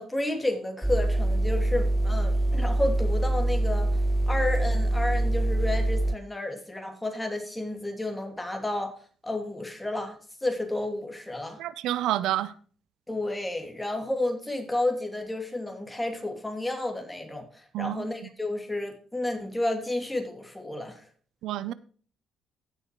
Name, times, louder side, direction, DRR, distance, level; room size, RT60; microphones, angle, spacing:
voice 1, 0.0-3.9 4.3-9.0 9.2-11.6 13.1-21.1, left 1 dB, 10° left, 2.7 m, -31 dB
sound 1, 0.8-6.2, right 1 dB, 5° right, 0.3 m, -24 dB
voice 2, 11.6-12.5 17.7-18.3 21.4-21.7, right 13 dB, 90° right, 0.5 m, -29 dB
16.5 x 6.6 x 3.0 m
cardioid pair, 90°, 0 cm